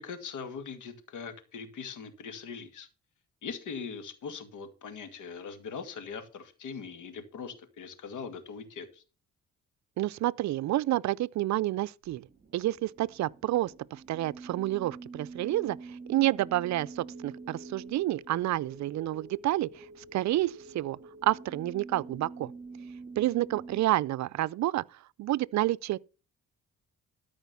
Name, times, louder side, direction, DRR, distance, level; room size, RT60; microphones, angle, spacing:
voice 1, 0.0-2.9 3.4-9.0, left 5 dB, 80° left, 2.2 m, -41 dB
voice 2, 10.0-12.3 12.5-19.8 20.1-22.5 23.2-24.8 25.2-26.1, right 15 dB, 65° right, 0.5 m, -29 dB
sound 1, 12.2-23.8, right 3 dB, 30° right, 1.7 m, -46 dB
13.5 x 5.1 x 6.9 m
cardioid pair, 90°, 30 cm